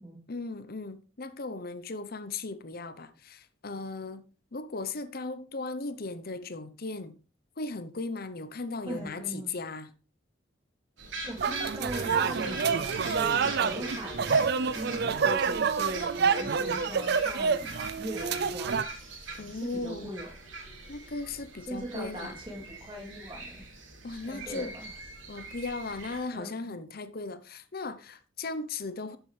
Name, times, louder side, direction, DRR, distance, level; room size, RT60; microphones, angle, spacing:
voice 1, 0.3-4.2 4.5-7.2 7.6-9.9 19.4-20.1 20.9-22.4 24.0-24.7 25.3-29.2, left 3 dB, 50° left, 0.8 m, -37 dB
voice 2, 8.9-9.5 11.2-14.3 14.7-18.8 19.3-20.3 21.6-23.6 24.2-24.9 26.3-26.7, right 1 dB, 25° right, 3.0 m, -40 dB
sound 1, 11.0-26.2, right 3 dB, 75° right, 3.1 m, -42 dB
sound 2, 11.4-18.8, right 5 dB, 55° right, 0.5 m, -28 dB
13.0 x 7.2 x 3.3 m
head